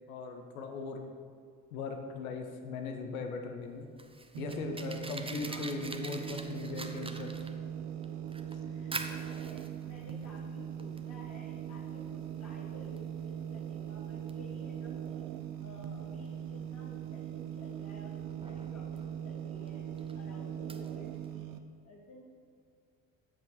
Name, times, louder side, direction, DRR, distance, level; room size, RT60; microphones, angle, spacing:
voice 1, 0.1-1.0 1.7-3.9 4.4-7.3, left 4 dB, 85° left, 4 dB, 1.0 m, -39 dB
Fire, 3.6-21.3, right 2 dB, 15° right, 0.9 m, -47 dB
sound 1, 4.3-21.6, right 9 dB, 75° right, 0.7 m, -40 dB
voice 2, 5.4-6.0 8.6-15.3 15.6-19.8 20.1-21.5 21.8-22.2, left 2 dB, 40° left, -3 dB, 1.6 m, -54 dB
13.5 x 7.8 x 4.0 m, 2.3 s
hypercardioid pair, 45°, 41 cm